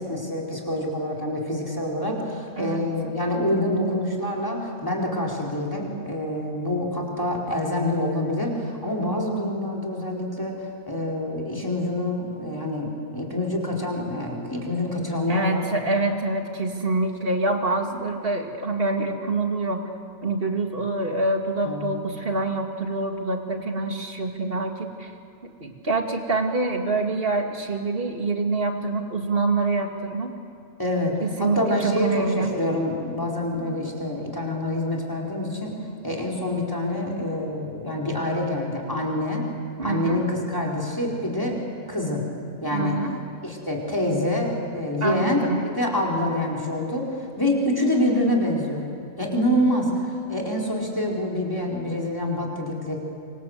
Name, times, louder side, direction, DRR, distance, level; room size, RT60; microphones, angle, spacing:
voice 1, 0.0-10.6 10.9-15.6 21.6-21.9 30.8-35.7 36.0-39.4 39.8-41.6 41.9-42.3 42.6-43.0 43.4-48.8 49.2-53.0, left 1 dB, 15° left, -2 dB, 4.5 m, -26 dB
voice 2, 15.3-19.9 20.2-25.1 25.4-30.3 31.2-32.5 39.8-40.2 42.7-43.2 45.0-45.6, right 2 dB, 40° right, 3 dB, 2.4 m, -26 dB
27.0 x 25.5 x 8.1 m, 2.4 s
omnidirectional pair, 1.5 m